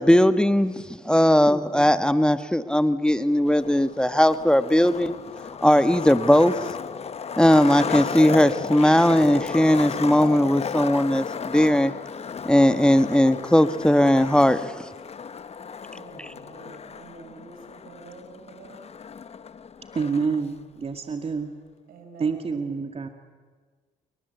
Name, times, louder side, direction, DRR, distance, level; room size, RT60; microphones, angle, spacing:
voice 1, 0.0-5.1 5.6-6.5 7.4-11.9 12.4-14.9 16.2-16.3, left 1 dB, 5° left, 11 dB, 1.4 m, -19 dB
voice 2, 1.1-1.5 15.8-18.9 21.9-22.6, right 3 dB, 80° right, 6 dB, 5.5 m, -47 dB
Skateboard, 3.4-20.4, left 6 dB, 45° left, 1.1 m, -34 dB
voice 3, 19.9-21.5 22.2-23.1, right 5 dB, 40° right, 7 dB, 2.2 m, -27 dB
28.5 x 23.5 x 8.2 m, 1.5 s
supercardioid pair, 60°, 15 cm